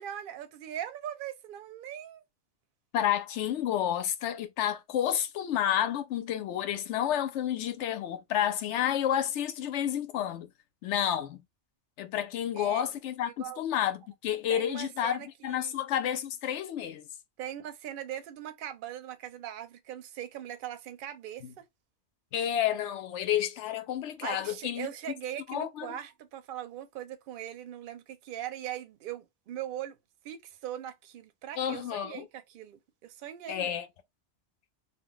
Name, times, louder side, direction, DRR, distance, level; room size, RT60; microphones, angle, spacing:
voice 1, 0.0-2.2 12.5-12.8 13.2-13.6 14.5-15.7 17.4-21.6 24.2-30.0 30.2-33.7, right 11 dB, 60° right, 0.6 m, -40 dB
voice 2, 2.9-10.5 10.8-11.4 12.0-17.1 22.3-24.9 25.5-25.9 31.6-32.2 33.5-33.9, left 10 dB, 90° left, 0.9 m, -30 dB
2.3 x 2.1 x 3.7 m
omnidirectional pair, 1.2 m